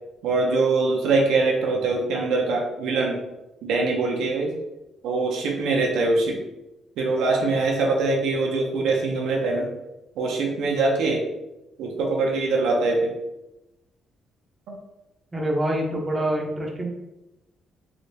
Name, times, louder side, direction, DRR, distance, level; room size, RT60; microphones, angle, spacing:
voice 1, 0.2-3.2 3.6-4.5 5.0-6.4 7.0-9.7 10.2-11.2 11.8-13.1 14.7-14.8, right 3 dB, 85° right, 0 dB, 0.6 m, -23 dB
voice 2, 15.3-16.9, right 1 dB, 20° right, 0 dB, 0.7 m, -25 dB
3.3 x 2.8 x 2.7 m, 0.96 s
cardioid pair, 90°, 0 cm